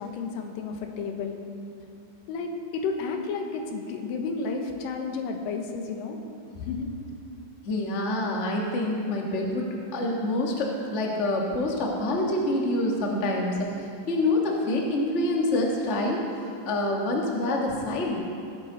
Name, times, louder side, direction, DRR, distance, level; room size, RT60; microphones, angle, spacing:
voice 1, 0.0-1.3 2.3-6.2 6.6-6.9, left 4 dB, 80° left, 4 dB, 2.7 m, -32 dB
voice 2, 7.6-13.7 14.1-18.2, left 1 dB, 65° left, -1 dB, 0.7 m, -26 dB
18.5 x 9.2 x 3.9 m, 2.6 s
omnidirectional pair, 4.0 m